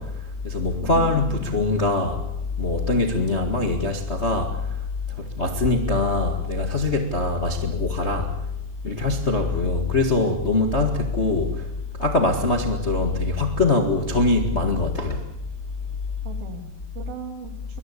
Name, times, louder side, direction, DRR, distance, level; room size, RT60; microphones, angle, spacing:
voice 1, 0.0-2.2 2.6-4.8 5.1-8.3 8.8-11.7 12.0-15.2, left 3 dB, 30° left, 4 dB, 1.2 m, -23 dB
voice 2, 0.8-1.5 16.3-17.8, right 7 dB, 80° right, 6 dB, 4.4 m, -38 dB
22.5 x 21.0 x 8.4 m, 0.86 s
omnidirectional pair, 4.2 m